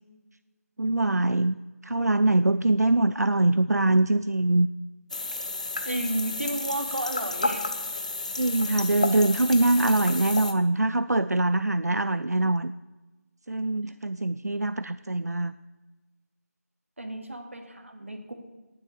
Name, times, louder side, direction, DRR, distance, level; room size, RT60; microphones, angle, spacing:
voice 1, 0.8-1.6 1.8-4.7 8.4-12.7 13.5-15.5, right 2 dB, 90° right, 14 dB, 0.5 m, -23 dB
sound 1, 5.1-10.5, left 2 dB, 25° left, 0.7 m, -31 dB
voice 2, 5.8-7.7 17.0-18.3, right 1 dB, 55° right, 4 dB, 2.4 m, -32 dB
18.5 x 7.7 x 6.8 m, 1.2 s
figure-of-eight pair, 170°, 9 cm